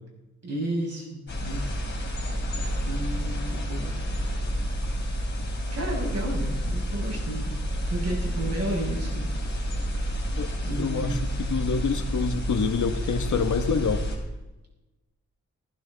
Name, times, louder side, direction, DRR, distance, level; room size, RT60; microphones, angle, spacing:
voice 1, 0.4-1.7 2.1-2.2 2.8-3.9 5.7-7.6 7.9-9.3 10.6-11.2, right 1 dB, 55° right, -1 dB, 6.0 m, -32 dB
sound 1, 1.3-14.2, equal, 35° left, 3.5 m, -29 dB
voice 2, 10.8-14.0, left 5 dB, 80° left, 7 dB, 1.2 m, -27 dB
16.0 x 15.0 x 4.0 m, 1.0 s
wide cardioid pair, 165°, 29 cm